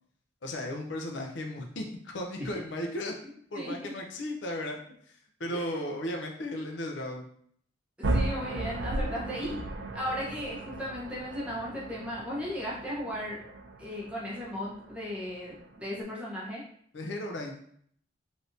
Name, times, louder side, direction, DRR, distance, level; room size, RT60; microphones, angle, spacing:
voice 1, 0.4-3.1 3.5-4.8 5.1-7.3 9.0-9.1 9.4-9.6 16.9-17.6, left 1 dB, 60° left, 1 dB, 0.5 m, -35 dB
voice 2, 3.5-3.9 5.5-5.8 8.0-9.5 9.9-13.4 13.8-16.6, left 1 dB, 5° right, -6 dB, 0.7 m, -36 dB
sound 1, 8.0-16.0, right 2 dB, 60° right, 0.4 m, -36 dB
3.4 x 2.6 x 2.5 m, 0.63 s
head